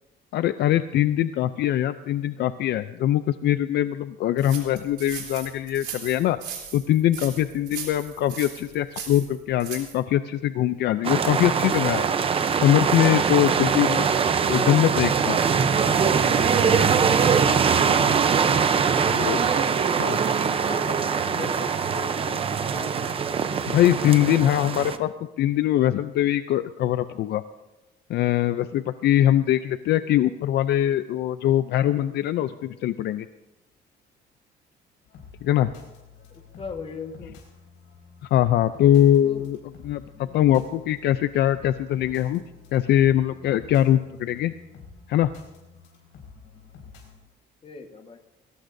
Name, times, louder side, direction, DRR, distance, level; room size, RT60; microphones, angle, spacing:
voice 1, 0.3-6.4 6.7-12.1 12.6-14.1 14.5-15.4 19.1-19.4 20.0-20.2 23.7-27.4 28.1-33.3 35.4-35.7 38.2-39.6 39.8-42.4 42.7-44.5 45.1-45.3, left 12 dB, 65° left, 12 dB, 0.5 m, -22 dB
sound 1, 4.4-10.0, right 8 dB, 65° right, 3.5 m, -38 dB
sound 2, 11.0-25.0, right 6 dB, 30° right, 0.7 m, -22 dB
voice 2, 19.0-23.2 36.3-37.4 39.2-39.4 40.1-40.4 47.6-48.2, left 5 dB, 30° left, 5 dB, 1.4 m, -40 dB
sound 3, 35.1-47.2, left 5 dB, 85° left, 5.2 m, -48 dB
21.5 x 18.0 x 2.7 m, 1.0 s
cardioid pair, 155°, 19 cm